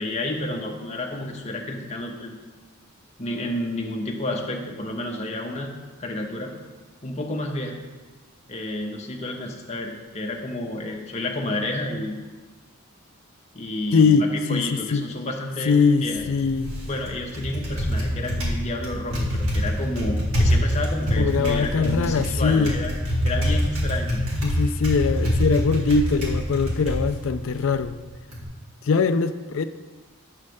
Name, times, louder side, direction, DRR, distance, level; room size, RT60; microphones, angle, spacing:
voice 1, 0.0-2.4 3.2-5.7 6.0-6.5 7.0-7.8 8.5-12.2 13.5-15.7 16.0-16.2 16.8-22.9 23.2-24.2, left 1 dB, 30° left, 1 dB, 0.8 m, -30 dB
voice 2, 13.9-15.1 15.6-16.7 21.2-22.8 24.4-28.0 28.8-29.6, left 4 dB, 60° left, 11 dB, 0.4 m, -22 dB
Typing, 16.0-28.4, equal, 75° right, 2.1 m, -26 dB
9.5 x 3.2 x 6.4 m, 1.3 s
head